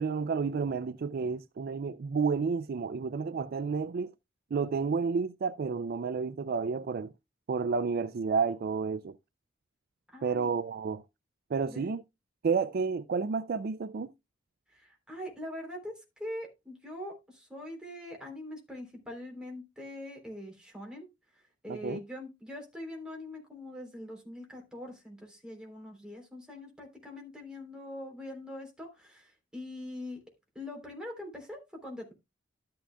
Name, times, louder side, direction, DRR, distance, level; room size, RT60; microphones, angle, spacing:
voice 1, 0.0-4.1 4.5-7.1 7.5-9.1 10.2-11.0 11.5-12.0 12.4-14.1 21.7-22.0, right 5 dB, 50° right, 0.4 m, -31 dB
voice 2, 10.1-10.5 11.7-11.9 14.7-21.1 21.6-30.2 30.5-32.1, left 1 dB, 5° right, 3.4 m, -43 dB
12.5 x 8.5 x 2.2 m
head